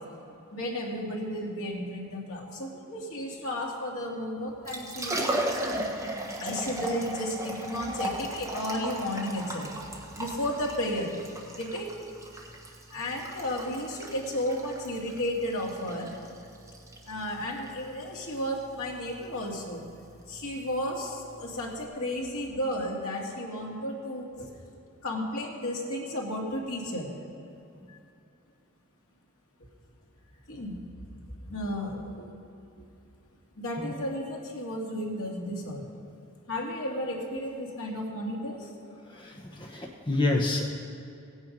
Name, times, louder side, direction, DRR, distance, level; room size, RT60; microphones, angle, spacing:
voice 1, 0.5-5.6 6.4-9.7 10.2-11.2 11.5-12.0 12.9-16.1 17.1-19.9 20.3-24.5 25.0-27.1 27.9-28.0 30.5-30.8 31.4-32.3 33.6-35.9 36.5-38.7, left 1 dB, 75° left, -2 dB, 2.2 m, -33 dB
Liquid, 4.5-21.8, right 1 dB, 15° right, 1.1 m, -37 dB
voice 2, 39.1-40.7, left 2 dB, 20° left, 0 dB, 0.8 m, -28 dB
17.0 x 8.7 x 5.2 m, 2.7 s
head